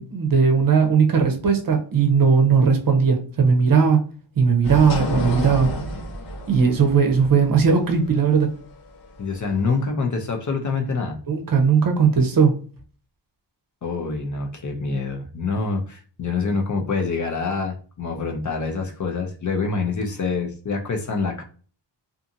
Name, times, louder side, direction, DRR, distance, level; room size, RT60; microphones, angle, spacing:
voice 1, 0.0-4.0 4.4-5.7 6.5-8.5 11.3-12.5, right 6 dB, 50° right, 0.6 m, -18 dB
sound 1, 4.6-9.9, equal, 85° left, 1.0 m, -30 dB
voice 2, 9.2-11.2 13.8-21.4, left 4 dB, 45° left, 0.5 m, -26 dB
2.6 x 2.5 x 2.6 m
wide cardioid pair, 170°, 44 cm